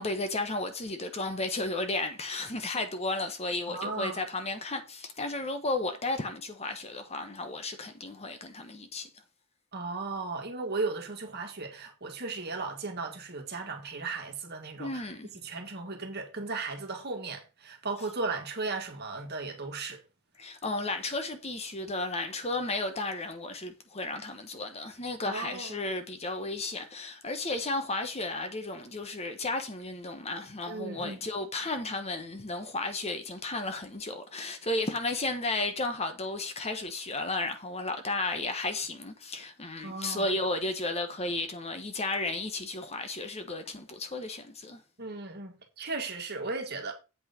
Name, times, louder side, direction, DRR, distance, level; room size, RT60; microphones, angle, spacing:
voice 1, 0.0-9.1 14.8-15.3 20.4-44.8, left 2 dB, 30° left, 1.1 m, -33 dB
voice 2, 3.7-4.2 9.7-15.0 15.4-20.0 25.3-25.8 30.7-31.2 39.8-40.3 45.0-46.9, right 3 dB, 45° right, 1.9 m, -36 dB
8.1 x 5.4 x 5.1 m
head